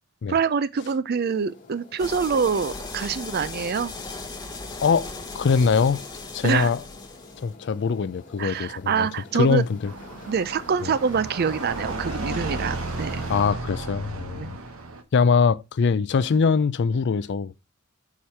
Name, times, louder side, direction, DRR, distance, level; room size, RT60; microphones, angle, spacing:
voice 1, 0.3-3.9 6.4-6.7 8.4-9.6 10.3-13.2 14.4-14.5, right 6 dB, 45° right, 0.4 m, -25 dB
sound 1, 1.2-13.4, left 2 dB, 40° left, 1.3 m, -47 dB
sound 2, 2.0-7.5, left 3 dB, 20° left, 1.0 m, -37 dB
voice 2, 5.3-6.0 6.3-6.8 7.4-9.1 9.3-9.9 10.8-10.9 13.3-14.6 15.1-17.5, left 5 dB, 55° left, 0.4 m, -22 dB
sound 3, 9.8-15.0, right 2 dB, 75° right, 0.9 m, -33 dB
4.8 x 4.4 x 5.6 m
head